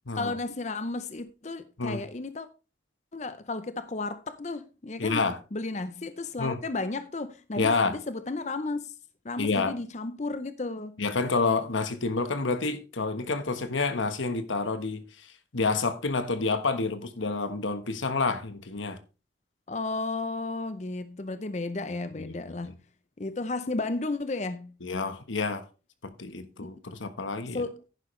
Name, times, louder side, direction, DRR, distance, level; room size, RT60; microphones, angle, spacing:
voice 1, 0.1-2.5 3.1-5.2 5.5-8.9 9.2-11.0 19.7-22.7 23.2-24.7 26.6-26.7 27.4-27.8, left 3 dB, 35° left, 0.6 m, -33 dB
voice 2, 5.0-5.4 6.4-6.6 7.6-8.0 9.4-9.7 11.0-19.0 22.5-22.7 24.8-25.6 26.0-27.6, left 3 dB, 90° left, 1.2 m, -29 dB
11.0 x 9.9 x 3.2 m
head